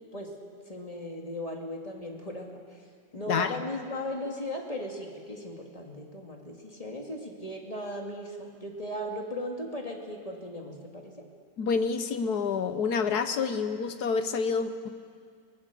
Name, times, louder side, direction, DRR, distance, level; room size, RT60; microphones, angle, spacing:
voice 1, 0.7-2.8 3.1-11.1, left 1 dB, 20° left, 1 dB, 2.4 m, -37 dB
voice 2, 3.3-3.6 11.6-14.9, left 5 dB, 60° left, 9 dB, 1.4 m, -28 dB
23.5 x 20.0 x 6.8 m, 2.1 s
omnidirectional pair, 2.0 m